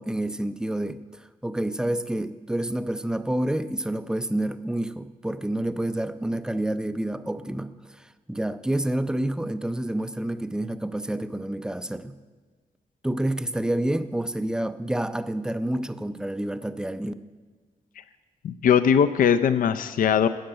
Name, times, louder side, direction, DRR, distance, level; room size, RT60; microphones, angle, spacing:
voice 1, 0.0-12.2 13.0-17.1, right 1 dB, 5° right, 12 dB, 0.4 m, -28 dB
voice 2, 18.4-20.3, left 7 dB, 70° left, 11 dB, 0.5 m, -20 dB
13.0 x 7.8 x 8.7 m, 1.4 s
wide cardioid pair, 165°, 15 cm